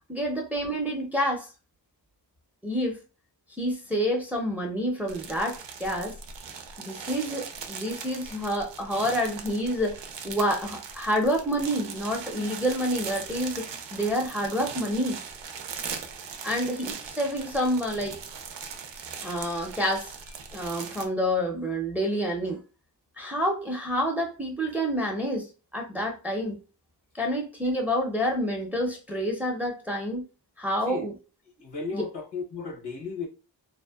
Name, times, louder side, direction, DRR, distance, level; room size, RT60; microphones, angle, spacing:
voice 1, 0.1-1.5 2.6-3.0 3.6-6.2 6.8-15.2 16.4-18.2 19.2-20.1 20.5-22.6 23.2-26.6 27.1-30.3 30.6-31.1 31.9-32.0, equal, 5° right, 0.6 m, -28 dB
sound 1, 5.1-21.1, right 6 dB, 90° right, 0.5 m, -40 dB
voice 2, 31.6-33.3, left 4 dB, 70° left, 1.0 m, -34 dB
2.7 x 2.1 x 2.3 m
wide cardioid pair, 80°, 42 cm